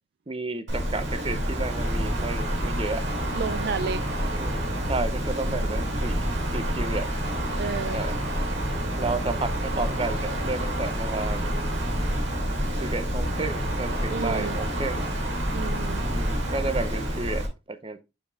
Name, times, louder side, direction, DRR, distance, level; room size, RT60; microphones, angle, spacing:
voice 1, 0.3-3.0 4.3-4.6 4.9-6.2 6.5-7.1 7.9-8.2 9.0-11.7 12.8-15.0 16.0-18.0, right 3 dB, 30° right, 0.7 m, -32 dB
Wind, 0.7-17.5, equal, 70° right, 2.7 m, -28 dB
voice 2, 3.3-4.0 5.5-5.6 7.6-8.0 14.1-14.6 15.5-16.0, right 5 dB, 55° right, 0.4 m, -31 dB
7.1 x 5.3 x 3.6 m
head